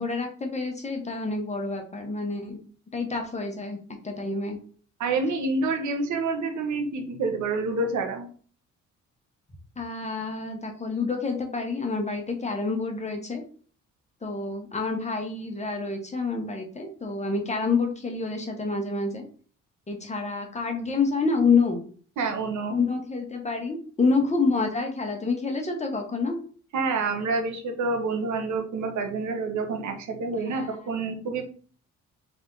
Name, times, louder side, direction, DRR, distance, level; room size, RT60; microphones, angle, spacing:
voice 1, 0.0-2.6 2.9-3.8 4.0-4.6 9.8-13.4 14.2-19.2 19.9-21.8 22.7-26.4 30.5-30.9, left 4 dB, 20° left, 2 dB, 1.1 m, -28 dB
voice 2, 5.0-8.3 22.2-22.8 26.7-31.4, right 3 dB, 70° right, 5 dB, 1.1 m, -28 dB
3.5 x 3.5 x 3.8 m, 0.43 s
cardioid pair, 90°, 30 cm